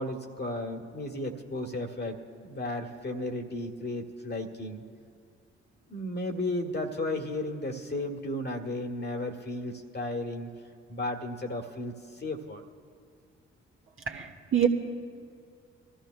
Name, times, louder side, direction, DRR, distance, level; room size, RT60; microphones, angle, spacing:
voice 1, 0.0-4.8 5.9-10.5 10.9-12.7, left 1 dB, 30° left, 3 dB, 1.9 m, -34 dB
voice 2, 14.1-14.7, right 9 dB, 40° right, 0 dB, 1.8 m, -26 dB
25.0 x 14.5 x 2.2 m, 2.2 s
figure-of-eight pair, 40°, 33 cm